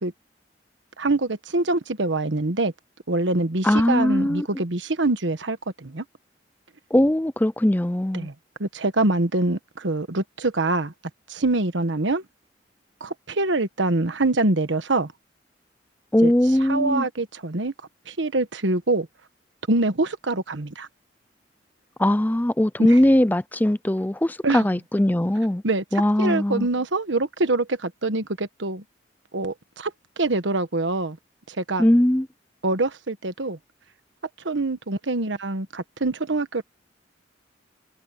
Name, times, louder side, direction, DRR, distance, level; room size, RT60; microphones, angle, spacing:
voice 1, 1.0-2.7 3.1-6.0 8.1-8.3 8.6-10.9 11.3-12.2 13.0-15.1 16.2-16.3 16.7-17.7 18.1-19.1 19.7-20.9 22.9-23.0 24.4-24.6 25.6-25.8 26.2-28.8 29.3-29.9 30.2-31.2 31.5-31.8 32.6-33.6 34.4-36.6, right 2 dB, 85° right, 1.3 m, -24 dB
voice 2, 3.6-4.5 6.9-8.3 16.1-17.0 22.0-25.6 25.9-26.7 31.8-32.3, left 1 dB, 10° left, 0.5 m, -20 dB
head